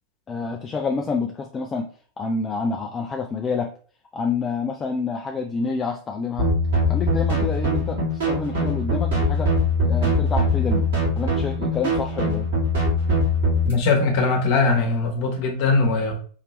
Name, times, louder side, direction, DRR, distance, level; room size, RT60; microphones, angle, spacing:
voice 1, 0.3-3.7 4.1-6.5 6.9-9.5 9.8-10.9 11.2-12.5, left 4 dB, 20° left, 2 dB, 0.4 m, -28 dB
sound 1, 6.4-13.7, left 1 dB, 65° right, 2.1 m, -22 dB
voice 2, 13.7-16.2, left 3 dB, 45° left, 2 dB, 1.1 m, -21 dB
4.7 x 2.9 x 2.9 m, 0.44 s
figure-of-eight pair, 90°, 0 cm